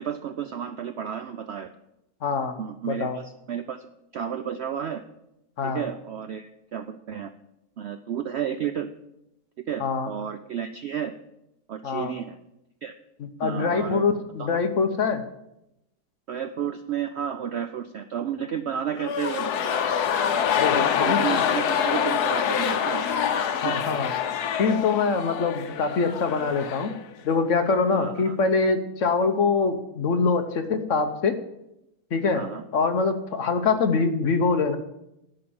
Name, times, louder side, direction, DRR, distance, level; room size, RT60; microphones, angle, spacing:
voice 1, 0.0-1.7 2.6-3.9 4.1-5.0 5.6-7.3 7.8-8.9 9.7-11.1 11.7-12.4 12.8-12.9 13.4-14.0 14.4-14.6 16.3-19.9 20.7-23.1 23.6-23.8 27.9-28.4 32.3-32.6, right 8 dB, 70° right, 9 dB, 0.6 m, -32 dB
voice 2, 2.2-2.6 2.8-3.2 5.6-5.9 9.8-10.1 11.8-12.1 13.2-15.2 20.6-21.4 23.6-24.1 24.6-26.9 27.2-31.4 32.1-32.4 32.7-34.8, left 4 dB, 55° left, 8 dB, 1.1 m, -24 dB
sound 1, 18.9-27.0 27.3-27.4, left 8 dB, 80° left, 1.3 m, -26 dB
10.5 x 5.8 x 8.5 m, 0.88 s
omnidirectional pair, 1.7 m